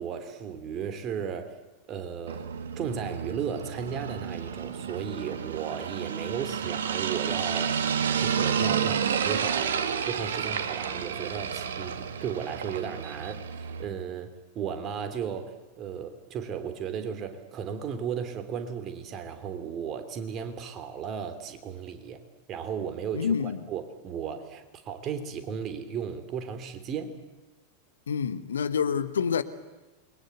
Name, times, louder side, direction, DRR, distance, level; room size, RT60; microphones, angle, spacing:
voice 1, 0.0-1.6 1.9-2.5 2.7-9.8 10.0-22.2 22.5-27.2, right 7 dB, 30° right, 3.3 m, -35 dB
sound 1, 2.3-13.8, right 7 dB, 65° right, 1.9 m, -30 dB
voice 2, 23.1-23.6 28.1-29.4, left 7 dB, 65° left, 1.3 m, -27 dB
28.0 x 22.5 x 8.2 m
figure-of-eight pair, 90°, 0 cm